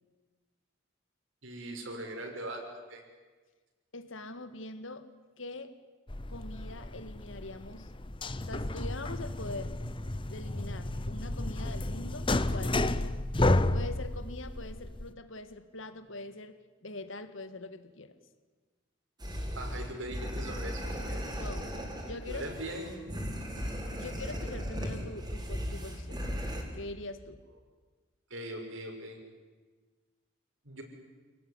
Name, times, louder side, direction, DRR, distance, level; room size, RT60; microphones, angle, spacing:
voice 1, 1.4-3.0 19.5-21.2 22.3-22.9 23.9-24.1 28.3-29.2 30.6-30.8, right 1 dB, 70° right, 3 dB, 5.7 m, -40 dB
voice 2, 3.9-5.1 5.4-5.7 6.3-7.9 8.4-9.8 10.3-13.1 13.7-18.2 21.4-21.8 22.1-22.5 24.0-26.3 26.7-27.4, left 2 dB, 70° left, 11 dB, 1.8 m, -43 dB
sound 1, 6.1-15.1, left 2 dB, 25° left, 0.8 m, -32 dB
sound 2, 19.2-26.6, equal, 20° right, 4.5 m, -37 dB
28.5 x 18.5 x 9.8 m, 1.4 s
head